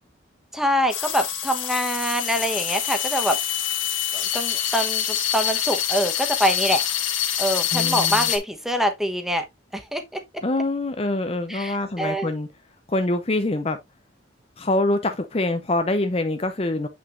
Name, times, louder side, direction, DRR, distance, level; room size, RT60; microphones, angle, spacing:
voice 1, 0.5-3.4 4.1-6.8 7.4-9.4 9.7-10.2 11.5-12.3, equal, ahead, 1.0 m, -25 dB
sound 1, 0.9-8.4, left 10 dB, 80° left, 1.8 m, -25 dB
voice 2, 7.7-8.3 10.4-12.5 12.9-13.8 14.6-16.9, left 2 dB, 30° left, 0.6 m, -24 dB
8.2 x 5.9 x 2.5 m
head